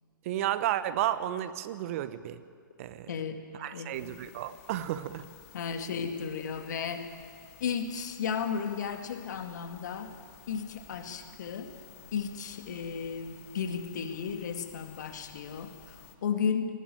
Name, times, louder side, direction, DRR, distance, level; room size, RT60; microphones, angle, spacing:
voice 1, 0.2-2.4 2.8-3.1 3.6-5.3, right 12 dB, 40° right, 14 dB, 1.0 m, -32 dB
voice 2, 3.1-3.4 3.7-4.1 5.5-7.1 7.6-10.1 10.5-11.7 12.1-16.7, left 6 dB, 55° left, 7 dB, 2.1 m, -34 dB
sound 1, 3.9-16.2, left 13 dB, 40° left, 1.7 m, -54 dB
sound 2, 9.4-16.1, right 3 dB, 65° right, 4.5 m, -58 dB
20.0 x 16.5 x 9.3 m, 2.2 s
figure-of-eight pair, 125°, 11 cm